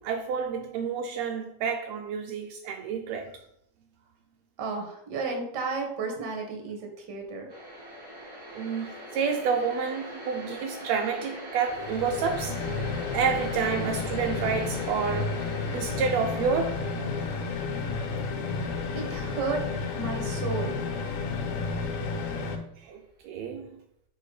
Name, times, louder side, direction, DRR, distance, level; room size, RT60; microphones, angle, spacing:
voice 1, 0.0-3.3 8.5-12.6 13.1-16.9 22.8-23.8, right 6 dB, 90° right, 1.5 m, -29 dB
voice 2, 4.6-7.5 18.9-19.6 19.9-20.8, right 4 dB, 50° right, 1.3 m, -33 dB
sound 1, 7.5-21.3, equal, 20° right, 0.6 m, -43 dB
sound 2, 11.7-22.6, left 4 dB, 90° left, 2.5 m, -32 dB
4.8 x 4.5 x 4.8 m
omnidirectional pair, 3.6 m